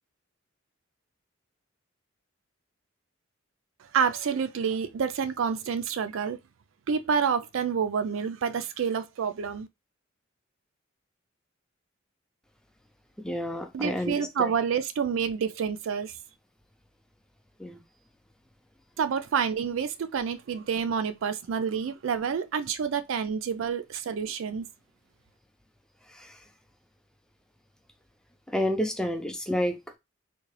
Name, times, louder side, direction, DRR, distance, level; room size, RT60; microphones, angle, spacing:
voice 1, 3.9-6.4 6.9-9.7 13.7-16.1 19.0-24.7, right 6 dB, 70° right, 0.4 m, -28 dB
voice 2, 13.2-14.5 17.6-17.8 26.1-26.4 28.5-30.0, left 1 dB, 5° left, 0.5 m, -30 dB
3.7 x 2.2 x 3.2 m
head